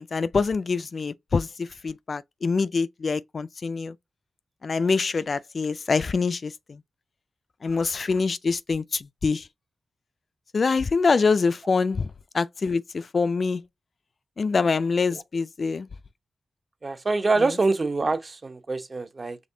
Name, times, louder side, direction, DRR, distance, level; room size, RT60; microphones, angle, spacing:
voice 1, 0.0-3.9 4.6-6.8 7.6-9.5 10.5-12.1 12.3-13.6 14.4-15.9 17.4-17.5, left 4 dB, 50° left, 0.3 m, -25 dB
voice 2, 16.8-19.4, right 3 dB, 40° right, 0.8 m, -25 dB
5.1 x 3.5 x 2.7 m
cardioid pair, 80°, 0 cm